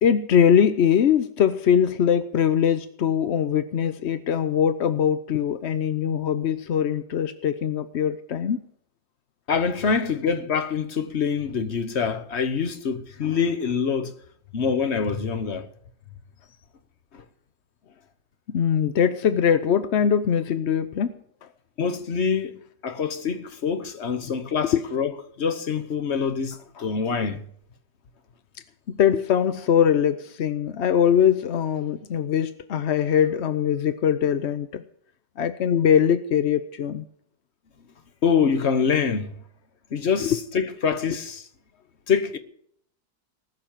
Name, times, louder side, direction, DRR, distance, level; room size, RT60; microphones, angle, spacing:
voice 1, 0.0-8.6 18.5-21.1 24.2-24.4 24.7-24.8 28.9-34.8 35.4-37.0 40.2-40.4, left 8 dB, 60° left, 0.7 m, -22 dB
voice 2, 9.5-14.1 14.5-15.7 17.1-17.2 21.8-25.1 25.4-27.4 38.2-39.3 39.9-41.4 42.1-42.4, left 6 dB, 45° left, 1.2 m, -25 dB
19.0 x 6.6 x 8.9 m
omnidirectional pair, 2.0 m